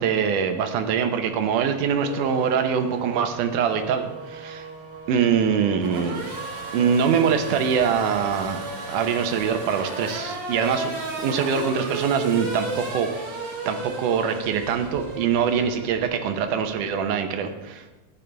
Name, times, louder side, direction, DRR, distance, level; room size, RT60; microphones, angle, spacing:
voice 1, 0.0-4.7 5.1-6.2 6.7-8.6 8.9-10.9 11.2-13.1 13.7-17.9, right 7 dB, 70° right, 6 dB, 2.2 m, -23 dB
Race car auto racing / Accelerating revving vroom, 2.0-16.8, right 2 dB, 40° right, 2.0 m, -34 dB
14.0 x 10.0 x 3.5 m, 1.1 s
omnidirectional pair, 4.2 m